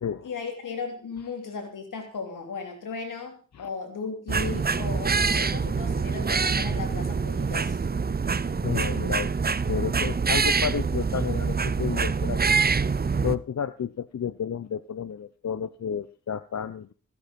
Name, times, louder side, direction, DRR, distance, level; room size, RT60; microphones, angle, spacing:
voice 1, 0.2-7.8, left 5 dB, 85° left, 5 dB, 3.4 m, -36 dB
sound 1, 4.3-13.3, right 5 dB, 30° right, 0.7 m, -25 dB
voice 2, 8.4-9.3 9.7-12.6 13.2-16.9, left 8 dB, 60° left, 14 dB, 0.8 m, -32 dB
16.0 x 9.9 x 5.3 m, 0.39 s
cardioid pair, 45°, 31 cm